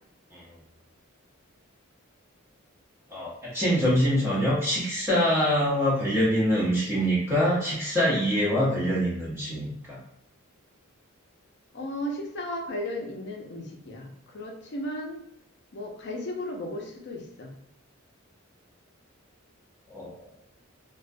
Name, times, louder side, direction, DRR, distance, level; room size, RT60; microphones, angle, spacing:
voice 1, 3.1-10.0 19.9-20.2, equal, 10° right, -8 dB, 0.7 m, -24 dB
voice 2, 11.7-15.2 15.7-17.5, left 1 dB, 55° left, 1 dB, 0.5 m, -35 dB
2.3 x 2.1 x 2.5 m, 0.76 s
head